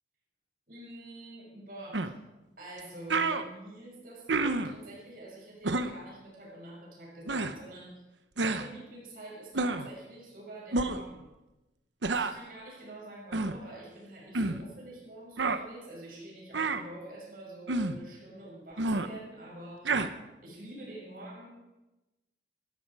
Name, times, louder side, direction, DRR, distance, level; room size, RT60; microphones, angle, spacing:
voice 1, 0.7-2.1 2.6-8.0 8.4-11.3 12.1-20.0 20.4-21.5, right 1 dB, 50° right, -3 dB, 6.4 m, -46 dB
sound 1, 1.9-2.1 2.8-2.9 3.1-3.4 4.3-4.7 5.6-5.9 7.3-7.5 8.4-8.7 9.5-9.9 10.7-11.0 12.0-12.4 13.3-13.6 14.3-14.6 15.4-15.6 16.5-16.8 17.7-18.0 18.8-19.1 19.8-20.1, right 3 dB, 90° right, 1.0 m, -29 dB
20.5 x 13.0 x 4.8 m, 1.0 s
head